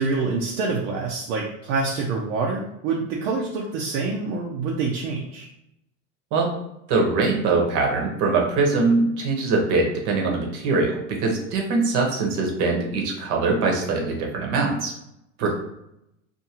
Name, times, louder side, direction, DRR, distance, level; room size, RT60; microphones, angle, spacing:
voice 1, 0.0-5.5 15.4-15.5, right 4 dB, 75° right, -2 dB, 0.6 m, -26 dB
voice 2, 6.9-14.9 15.4-15.5, right 3 dB, 50° right, 0 dB, 0.9 m, -22 dB
2.5 x 2.4 x 2.8 m, 0.82 s
hypercardioid pair, 105°, 39 cm